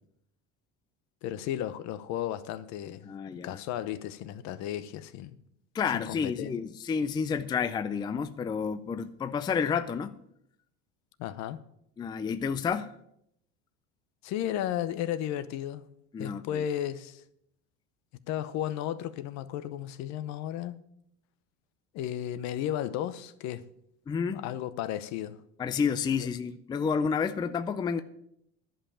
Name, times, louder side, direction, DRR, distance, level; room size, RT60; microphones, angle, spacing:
voice 1, 1.2-3.1 3.4-5.4 5.9-6.5 11.2-11.6 14.2-15.9 16.2-17.2 18.3-20.8 21.9-23.7 24.3-25.4 26.2-26.3, left 11 dB, 55° left, 0.8 m, -34 dB
voice 2, 3.0-3.6 5.7-10.2 12.0-12.9 16.1-16.6 24.1-24.4 25.6-28.0, left 6 dB, 15° left, 0.4 m, -30 dB
11.0 x 5.6 x 8.6 m
supercardioid pair, 130°, 33 cm